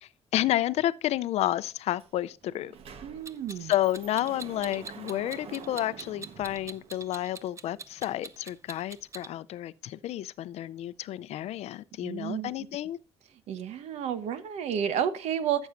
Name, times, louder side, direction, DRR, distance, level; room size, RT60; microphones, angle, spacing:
voice 1, 0.0-2.7 3.6-13.0, left 13 dB, 80° left, 0.5 m, -30 dB
Sliding door, 2.0-2.1 2.4-7.4, right 6 dB, 60° right, 1.2 m, -47 dB
voice 2, 3.0-3.7 12.0-12.5 13.5-15.7, right 9 dB, 85° right, 1.1 m, -31 dB
Clock, 3.3-9.3, right 4 dB, 25° right, 0.7 m, -43 dB
13.5 x 7.1 x 2.5 m
cardioid pair, 120°, 11 cm